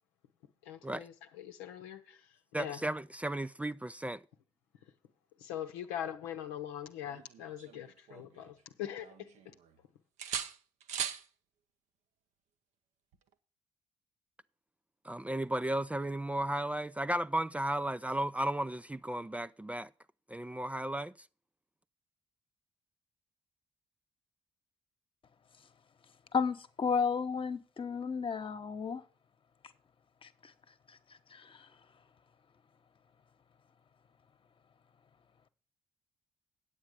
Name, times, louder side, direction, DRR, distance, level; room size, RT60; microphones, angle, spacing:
voice 1, 0.6-2.2 2.6-2.8 5.4-9.5, left 10 dB, 85° left, 0.8 m, -42 dB
voice 2, 2.5-4.2 15.0-19.9 20.3-21.1, right 1 dB, 10° right, 0.4 m, -34 dB
sound 1, 7.1-8.6 9.0-9.8 10.2-11.3 13.1-13.3, right 8 dB, 70° right, 0.8 m, -41 dB
voice 3, 26.3-29.0 30.2-30.3 31.3-31.7, left 6 dB, 45° left, 1.1 m, -33 dB
8.7 x 8.3 x 5.0 m
hypercardioid pair, 45°, 12 cm